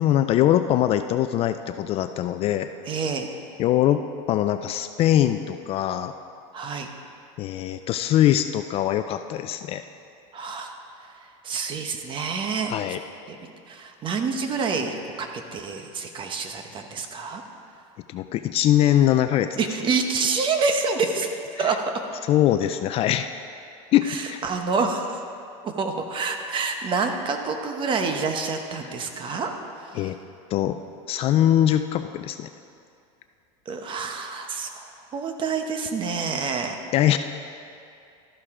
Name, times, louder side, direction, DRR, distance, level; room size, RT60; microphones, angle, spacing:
voice 1, 0.0-2.7 3.6-6.1 7.4-9.8 12.7-13.0 18.1-19.6 21.6-21.8 22.3-23.3 23.9-24.4 29.9-30.2 30.5-30.8 31.1-32.5 36.9-37.2, left 12 dB, 35° left, 9 dB, 0.3 m, -22 dB
voice 2, 2.9-3.3 6.5-6.9 10.3-10.7 11.4-12.7 13.3-17.4 19.6-21.9 24.0-25.2 25.6-29.5 29.8-30.1 33.7-36.8, right 4 dB, 30° right, 5 dB, 1.0 m, -27 dB
12.5 x 11.5 x 3.7 m, 2.5 s
supercardioid pair, 135°, 17 cm